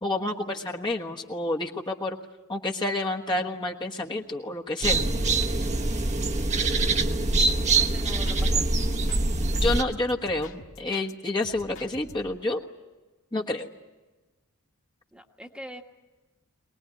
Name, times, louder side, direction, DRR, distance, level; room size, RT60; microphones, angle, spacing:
voice 1, 0.0-2.2 2.5-5.0 9.5-12.6 13.3-13.7, left 2 dB, 20° left, -1 dB, 1.3 m, -29 dB
sound 1, 4.8-9.8, right 3 dB, 35° right, 1.2 m, -24 dB
sound 2, 7.1-8.5 8.8-11.1 11.4-12.4, left 2 dB, 65° left, 1.7 m, -47 dB
voice 2, 7.5-8.7 15.1-15.8, equal, 5° right, 3 dB, 1.4 m, -43 dB
23.5 x 19.5 x 9.7 m, 1.2 s
head